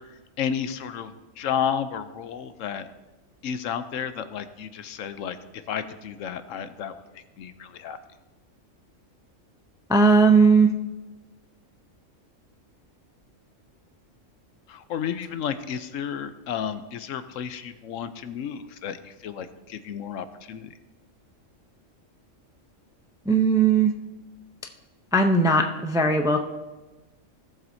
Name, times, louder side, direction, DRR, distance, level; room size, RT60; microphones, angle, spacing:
voice 1, 0.0-2.9 3.4-5.4 5.7-8.0 14.7-20.7, left 8 dB, 80° left, 11 dB, 1.0 m, -32 dB
voice 2, 9.9-10.7 23.3-23.9 25.1-26.4, right 3 dB, 5° right, 5 dB, 0.3 m, -18 dB
17.5 x 7.5 x 2.7 m, 1.1 s
omnidirectional pair, 1.3 m